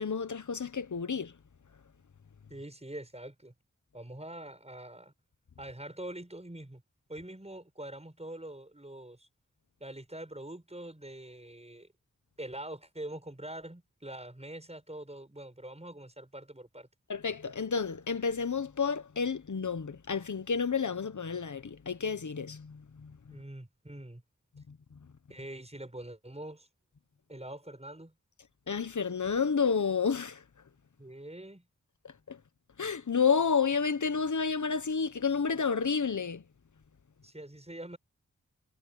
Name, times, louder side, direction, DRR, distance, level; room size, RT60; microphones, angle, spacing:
voice 1, 0.0-1.3 17.1-23.1 24.7-24.8 28.7-30.4 32.3-32.4 32.8-36.4, left 5 dB, 65° left, 1.2 m, -30 dB
voice 2, 2.5-3.5 3.9-5.1 5.6-6.8 7.1-9.3 9.8-11.9 12.4-16.9 23.3-24.2 25.3-26.7 27.3-28.2 31.0-31.7 37.2-38.0, right 1 dB, 20° right, 7.6 m, -44 dB
wide cardioid pair, 55°, 31 cm